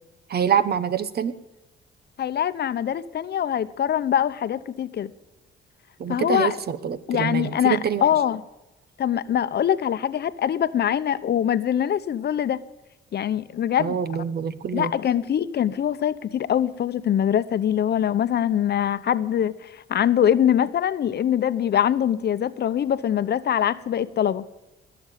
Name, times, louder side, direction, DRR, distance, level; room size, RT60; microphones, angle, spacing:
voice 1, 0.3-1.3 6.0-8.0 13.8-14.9, right 7 dB, 55° right, 14 dB, 1.1 m, -25 dB
voice 2, 2.2-5.1 6.1-6.6 7.1-8.4 9.0-12.6 13.1-14.0 14.7-24.4, left 9 dB, 55° left, 13 dB, 0.8 m, -23 dB
20.5 x 7.1 x 9.2 m, 1.0 s
cardioid pair, 90°, 20 cm